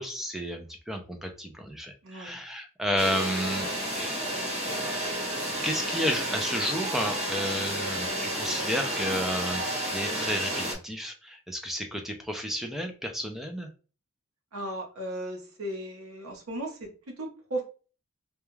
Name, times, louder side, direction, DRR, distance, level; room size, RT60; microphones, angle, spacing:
voice 1, 0.0-4.3 5.6-13.7, equal, ahead, 4 dB, 0.3 m, -32 dB
voice 2, 2.0-2.3 14.5-17.6, right 1 dB, 80° right, 1 dB, 0.9 m, -36 dB
sound 1, 3.0-10.8, right 1 dB, 30° right, 0.7 m, -31 dB
2.3 x 2.2 x 3.0 m, 0.36 s
head